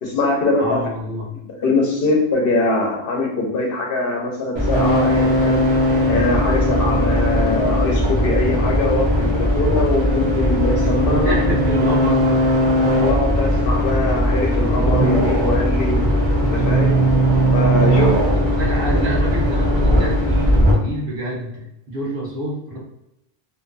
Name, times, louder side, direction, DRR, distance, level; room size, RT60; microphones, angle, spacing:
voice 1, 0.0-0.9 1.6-5.6 6.1-11.4 13.0-16.0 16.5-17.0 17.5-18.1, left 2 dB, 70° left, 0 dB, 0.8 m, -22 dB
voice 2, 0.6-1.3 11.1-12.5 17.7-22.8, right 1 dB, 60° right, -3 dB, 0.9 m, -27 dB
sound 1, 4.6-20.7, equal, 35° right, 0.5 m, -18 dB
2.5 x 2.2 x 2.4 m, 0.86 s
omnidirectional pair, 1.0 m